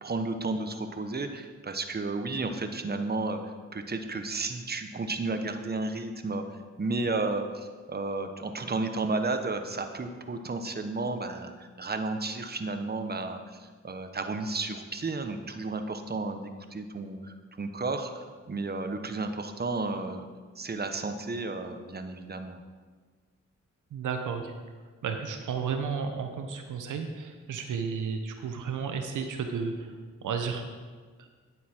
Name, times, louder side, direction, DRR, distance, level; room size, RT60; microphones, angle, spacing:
voice 1, 0.0-3.4 3.7-6.4 6.8-20.3 20.5-22.6, right 3 dB, 35° right, 6 dB, 1.1 m, -32 dB
voice 2, 23.9-24.5 25.0-29.7 30.2-30.6 31.2-31.3, right 6 dB, 90° right, 5 dB, 0.9 m, -32 dB
9.8 x 8.1 x 4.5 m, 1.5 s
cardioid pair, 55°, 30 cm